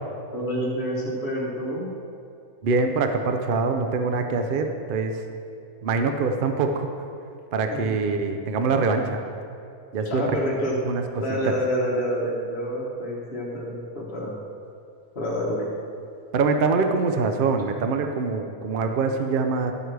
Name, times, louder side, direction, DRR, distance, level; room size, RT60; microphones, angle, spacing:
voice 1, 0.3-1.9 7.7-8.0 10.0-10.8 11.2-14.4 15.1-15.7, equal, 45° left, -6 dB, 1.3 m, -28 dB
voice 2, 2.6-5.2 5.8-6.9 7.5-9.2 9.9-10.2 10.9-11.0 11.4-11.5 16.3-19.7, right 4 dB, 65° right, 5 dB, 0.5 m, -24 dB
12.0 x 7.8 x 3.3 m, 2.5 s
omnidirectional pair, 1.5 m